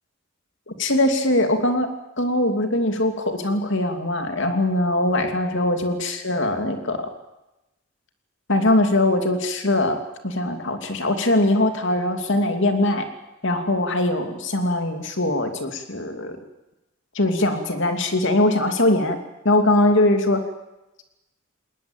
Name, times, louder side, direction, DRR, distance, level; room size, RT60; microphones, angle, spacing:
voice 1, 0.8-1.9 2.2-7.1 8.5-13.1 13.4-16.4 17.1-19.2 19.4-20.4, left 1 dB, 60° left, 6 dB, 2.9 m, -21 dB
20.0 x 20.0 x 9.0 m, 0.96 s
head